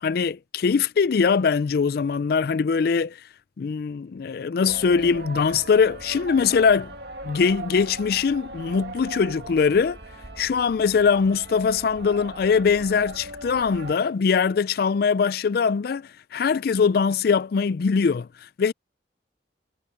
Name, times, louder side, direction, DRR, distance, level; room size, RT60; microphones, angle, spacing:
voice 1, 0.0-3.2 3.6-6.9 7.2-10.0 10.4-18.3 18.6-18.7, left 5 dB, 55° left, 0.4 m, -22 dB
sound 1, 4.7-13.9, right 2 dB, 65° right, 2.4 m, -40 dB
head